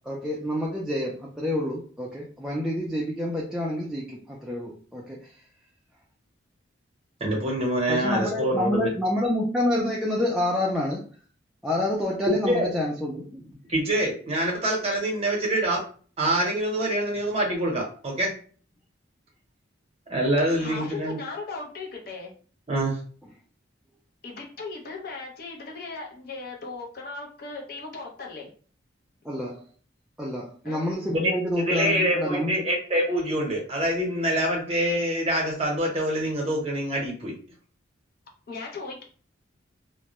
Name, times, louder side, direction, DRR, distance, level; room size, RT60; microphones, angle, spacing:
voice 1, 0.1-5.2 7.9-11.0 11.6-13.6 29.2-29.6 30.2-32.5, left 1 dB, 5° right, -4 dB, 0.3 m, -28 dB
voice 2, 7.2-8.9 12.3-12.7 13.7-15.8 16.2-18.3 20.1-21.2 22.7-23.0 31.2-31.3 31.7-37.3, right 1 dB, 30° right, -1 dB, 0.8 m, -25 dB
voice 3, 20.6-22.3 24.2-28.5 30.6-30.9 38.5-39.0, left 3 dB, 50° left, 0 dB, 0.6 m, -37 dB
2.2 x 2.0 x 2.8 m, 0.42 s
head